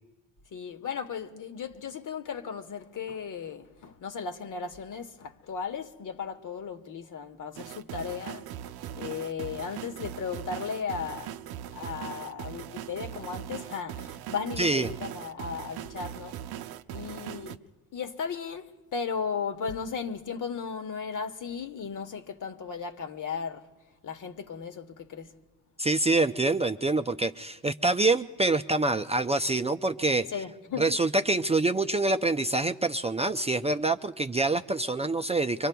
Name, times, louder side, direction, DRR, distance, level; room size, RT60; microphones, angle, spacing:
voice 1, 0.5-8.4 9.0-11.4 11.7-16.4 16.9-17.6 17.9-23.7 24.0-25.3 30.3-30.9, left 6 dB, 55° left, 1.2 m, -36 dB
sound 1, 7.6-17.6, right 11 dB, 85° right, 0.6 m, -40 dB
voice 2, 14.6-14.9 25.8-30.3 30.8-35.7, right 2 dB, 15° right, 0.4 m, -26 dB
25.5 x 24.5 x 2.3 m
cardioid pair, 75°, 37 cm